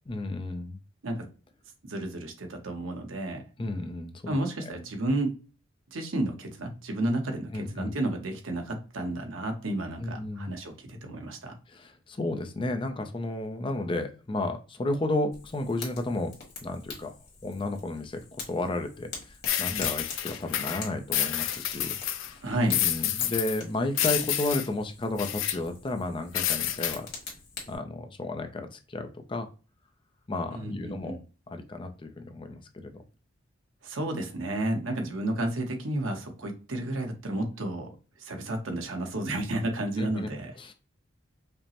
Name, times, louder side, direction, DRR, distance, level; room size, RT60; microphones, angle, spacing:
voice 1, 0.1-0.8 3.6-4.3 7.5-7.9 10.0-10.5 11.7-16.3 16.6-17.1 17.4-18.2 18.5-22.4 22.8-27.1 27.7-29.5 30.3-31.2 31.5-32.9 40.0-40.3 40.6-40.7, left 2 dB, 25° left, 6 dB, 0.4 m, -32 dB
voice 2, 1.8-3.4 4.3-5.4 5.9-11.5 22.4-22.8 30.5-31.2 33.8-37.9 38.2-40.5, right 1 dB, 85° right, 4 dB, 0.9 m, -31 dB
Fire, 15.3-27.8, left 4 dB, 55° left, 1.5 m, -45 dB
sound 1, 19.5-22.3 22.7-23.6 23.9-24.7 25.2-25.6 26.3-26.9, left 11 dB, 80° left, 0.5 m, -29 dB
5.1 x 2.0 x 2.8 m, 0.35 s
head